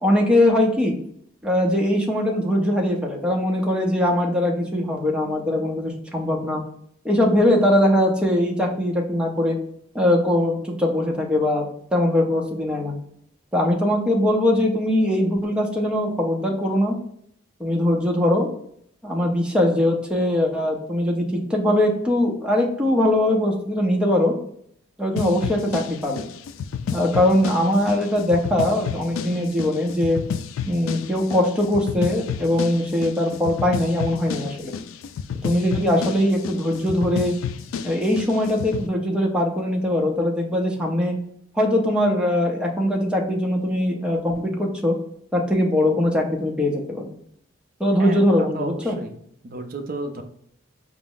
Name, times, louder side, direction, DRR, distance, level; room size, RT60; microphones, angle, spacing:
voice 1, 0.0-0.9 1.4-6.6 7.0-9.6 9.9-13.0 13.5-17.0 17.6-18.5 19.0-24.4 25.0-26.2 26.9-30.2 30.7-34.7 35.4-37.3 37.8-41.1 41.5-45.0 45.3-47.1 47.8-49.0, left 1 dB, 5° right, -1 dB, 0.6 m, -21 dB
sound 1, 25.2-38.9, left 7 dB, 85° left, 0.3 m, -31 dB
voice 2, 48.0-49.2 49.4-50.2, right 2 dB, 45° right, 6 dB, 0.5 m, -33 dB
4.9 x 2.0 x 3.7 m, 0.68 s
head